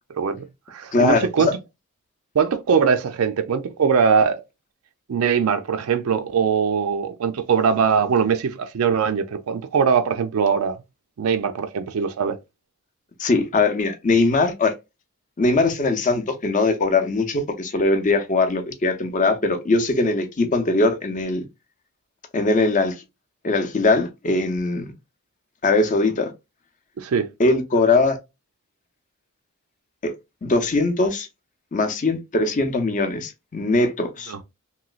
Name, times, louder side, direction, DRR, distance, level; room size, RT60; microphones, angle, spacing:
voice 1, 0.2-1.5 2.4-4.4 5.1-10.8 11.2-12.4 27.0-27.3 34.3-34.4, right 6 dB, 75° right, 0.4 m, -21 dB
voice 2, 0.9-1.5 13.2-14.7 15.4-21.4 22.3-22.9 23.4-24.9 25.6-26.3 27.4-28.2 30.0-30.1 30.4-31.3 31.7-34.3, left 3 dB, 35° left, 0.6 m, -21 dB
3.0 x 3.0 x 2.3 m
head